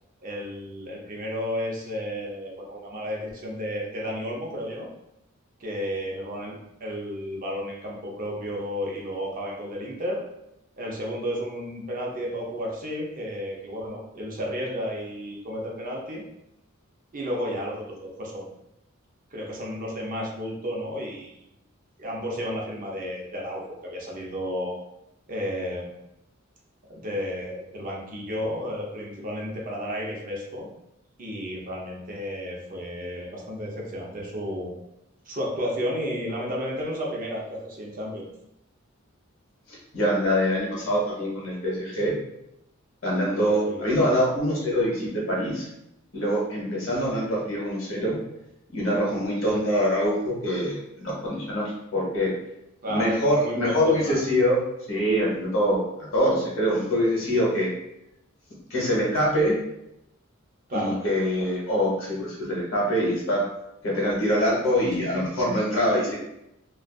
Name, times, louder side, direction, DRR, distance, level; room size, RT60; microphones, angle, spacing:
voice 1, 0.2-4.9 5.6-6.5 6.8-10.2 10.8-16.2 17.1-18.5 19.3-21.3 22.0-24.8 25.3-25.9 26.9-30.7 31.2-34.7 35.3-38.3 43.3-43.9 49.4-49.6 52.8-54.2 60.7-61.0 64.8-64.9, equal, 40° right, -2 dB, 0.5 m, -32 dB
voice 2, 39.7-42.1 43.0-45.7 46.1-48.2 48.7-52.3 52.9-54.6 54.9-57.7 58.7-59.6 60.7-63.5 63.8-66.1, equal, 65° left, -4 dB, 0.9 m, -24 dB
2.4 x 2.3 x 2.2 m, 0.84 s
head